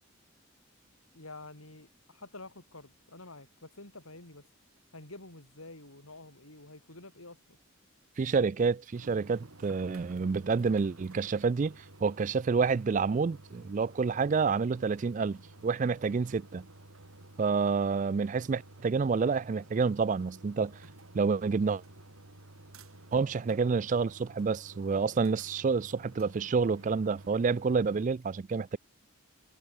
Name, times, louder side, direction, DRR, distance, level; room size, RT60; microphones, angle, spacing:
voice 1, 1.1-4.5 4.9-7.6, left 2 dB, 85° left, 6.7 m, -49 dB
voice 2, 8.2-16.7 17.4-20.7 21.1-21.8 23.1-28.8, right 5 dB, 35° right, 0.3 m, -28 dB
sound 1, 8.9-28.1, right 2 dB, 85° right, 2.9 m, -52 dB
head